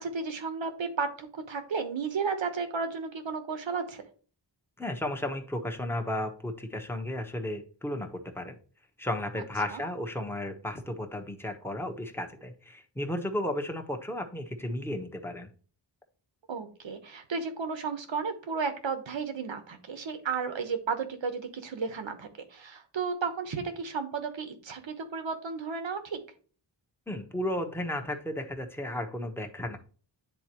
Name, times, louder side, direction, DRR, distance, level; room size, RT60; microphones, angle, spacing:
voice 1, 0.0-4.0 9.7-9.8 16.5-26.2, right 5 dB, 80° right, 7 dB, 1.2 m, -33 dB
voice 2, 4.8-8.6 9.0-15.5 27.1-29.8, left 1 dB, 5° left, 4 dB, 1.0 m, -34 dB
9.9 x 3.8 x 3.0 m, 0.40 s
wide cardioid pair, 75°, 45 cm